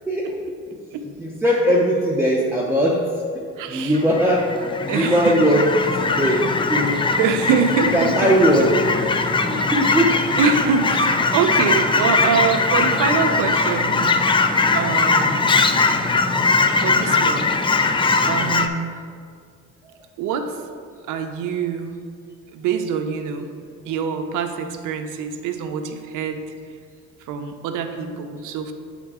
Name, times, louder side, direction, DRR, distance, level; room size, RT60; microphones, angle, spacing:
voice 1, 1.2-3.0 3.7-5.7 6.2-7.0 7.9-9.1 9.5-10.2, equal, 10° right, -4 dB, 0.7 m, -19 dB
voice 2, 3.6-4.1 4.9-5.7 6.2-6.5 7.2-8.7 9.8-10.0 10.4-14.1 14.7-15.6 16.8-17.6 18.3-19.0 20.2-20.5 21.1-22.0 22.5-23.5 23.9-26.4 27.3-28.7, right 6 dB, 90° right, 6 dB, 0.6 m, -24 dB
Fowl / Chirp tweet, 3.9-18.7, left 3 dB, 20° left, 0.3 m, -20 dB
7.5 x 3.7 x 4.7 m, 2.1 s
cardioid pair, 90°, 30 cm